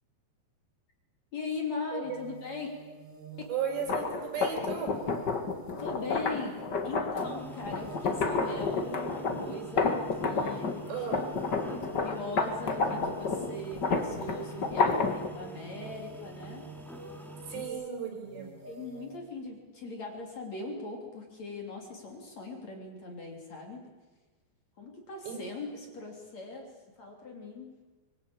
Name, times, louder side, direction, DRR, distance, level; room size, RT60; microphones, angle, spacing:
voice 1, 1.3-2.7 5.8-11.3 11.7-16.6 17.4-17.7 18.7-23.8 24.8-26.7 27.0-27.7, left 3 dB, 40° left, 2 dB, 3.9 m, -40 dB
sound 1, 2.0-19.2, right 5 dB, 35° right, 3.4 m, -49 dB
voice 2, 3.5-4.9 10.9-11.2 17.5-18.5 25.3-25.4, right 7 dB, 70° right, 3 dB, 7.4 m, -35 dB
sound 2, 3.8-10.8 11.1-15.3, left 4 dB, 80° left, 0.9 m, -30 dB
sound 3, 7.2-17.7, right 1 dB, ahead, 2.3 m, -46 dB
25.0 x 22.0 x 8.7 m, 1.2 s
omnidirectional pair, 5.1 m